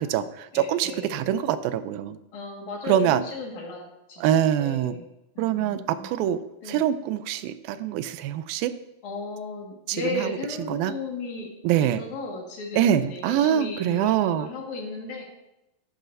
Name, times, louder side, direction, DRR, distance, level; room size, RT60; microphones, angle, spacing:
voice 1, 0.0-2.2 2.9-3.2 4.2-5.0 5.4-6.4 6.7-8.7 9.9-10.3 10.7-10.9 11.6-12.0 12.7-14.5, right 10 dB, 90° right, 13 dB, 2.4 m, -24 dB
voice 2, 0.5-1.3 2.3-3.8 4.1-5.1 5.3-6.1 6.6-6.8 9.0-11.5 11.8-15.2, left 2 dB, 60° left, -1 dB, 3.1 m, -35 dB
12.0 x 10.5 x 2.6 m, 0.91 s
omnidirectional pair, 4.1 m